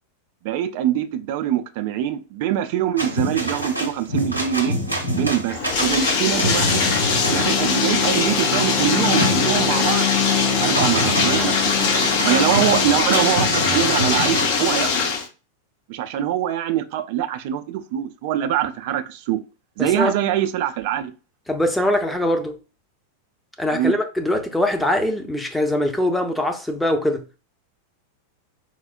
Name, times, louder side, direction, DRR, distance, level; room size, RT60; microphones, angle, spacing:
voice 1, 0.4-4.8 5.1-6.8 7.3-10.1 10.6-11.9 12.2-14.9 15.9-19.4 19.8-21.1 23.7-24.0, right 11 dB, 50° right, 0.3 m, -23 dB
sound 1, 3.0-14.5, right 1 dB, 85° right, 0.6 m, -27 dB
Bathtub (filling or washing), 5.5-15.3, left 5 dB, 50° left, 0.6 m, -21 dB
Bowed string instrument, 5.9-13.6, left 7 dB, 25° left, 1.0 m, -27 dB
voice 2, 19.8-20.1 21.5-22.5 23.6-27.2, left 1 dB, 5° left, 0.6 m, -22 dB
4.3 x 2.0 x 2.4 m
figure-of-eight pair, 90°, 0 cm